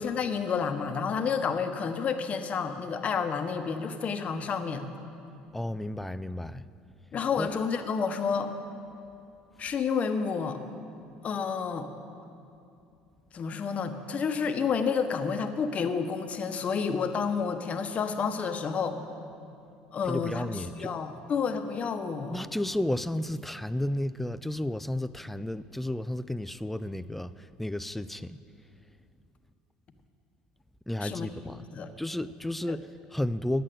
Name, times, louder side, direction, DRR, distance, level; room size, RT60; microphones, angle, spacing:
voice 1, 0.0-4.8 7.1-8.5 9.6-10.6 11.2-11.9 13.3-19.0 19.9-20.5 20.8-22.4 31.0-31.3 31.7-31.9 32.7-32.8, left 6 dB, 45° left, 8 dB, 0.9 m, -30 dB
voice 2, 5.5-6.7 7.4-7.5 20.1-20.9 22.3-28.4 30.9-31.6 32.0-33.6, left 1 dB, 5° left, 15 dB, 0.4 m, -32 dB
10.5 x 8.5 x 7.6 m, 2.7 s
hypercardioid pair, 75°, 3 cm